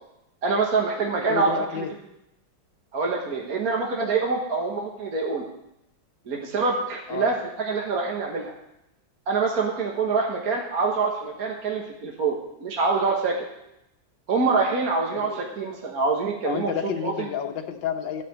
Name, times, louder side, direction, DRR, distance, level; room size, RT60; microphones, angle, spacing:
voice 1, 0.4-1.9 2.9-5.5 6.3-8.5 9.3-13.5 14.3-16.7 17.0-17.3, right 4 dB, 50° right, -1 dB, 1.8 m, -25 dB
voice 2, 1.2-1.9 7.1-7.3 10.1-10.2 15.1-15.4 16.4-18.2, left 8 dB, 70° left, 6 dB, 1.6 m, -30 dB
12.0 x 5.9 x 7.9 m, 0.84 s
omnidirectional pair, 2.2 m